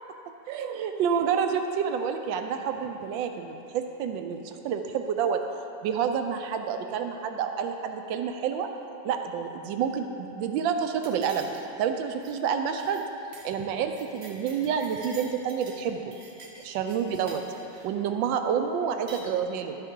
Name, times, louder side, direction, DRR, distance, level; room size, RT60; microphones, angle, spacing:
voice 1, 0.5-5.4 5.8-8.7 9.0-13.0 13.4-16.1 16.6-17.4 17.8-19.8, right 7 dB, 90° right, 6 dB, 1.3 m, -29 dB
sound 1, 11.0-11.8 12.1-12.4 12.7-13.0 13.3-13.5 13.8-15.8 16.1-17.9 18.8-19.3, right 2 dB, 45° right, 1.0 m, -48 dB
12.0 x 8.1 x 3.8 m, 2.9 s
omnidirectional pair, 2.0 m